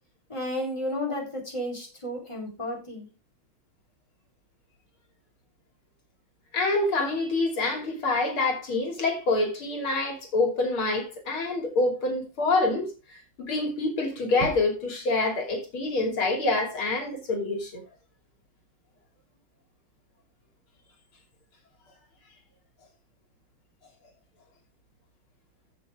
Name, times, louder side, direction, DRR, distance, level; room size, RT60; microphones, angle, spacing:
voice 1, 0.3-3.1, left 1 dB, 15° left, 4.4 m, -32 dB
voice 2, 6.5-12.9 13.4-17.8, left 2 dB, 80° left, 3.7 m, -26 dB
14.5 x 7.0 x 3.6 m
omnidirectional pair, 2.3 m